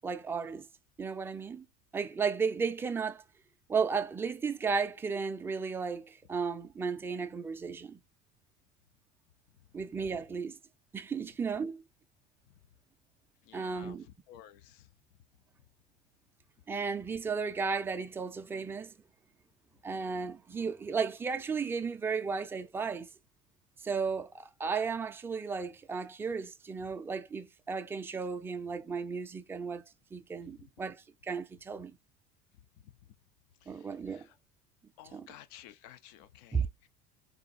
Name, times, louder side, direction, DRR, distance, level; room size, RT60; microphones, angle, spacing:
voice 1, 0.0-0.7 1.0-1.7 1.9-3.2 3.7-8.0 9.7-10.6 10.9-11.8 13.5-14.1 16.7-18.9 19.8-23.1 23.8-29.8 30.1-32.0 33.7-34.2 35.1-35.3 36.5-36.7, right 5 dB, 10° right, 0.4 m, -34 dB
voice 2, 13.4-14.9 30.6-30.7 32.8-32.9 33.6-34.3 35.0-36.9, left 11 dB, 80° left, 0.6 m, -54 dB
3.8 x 2.6 x 4.0 m
cardioid pair, 160°, 21 cm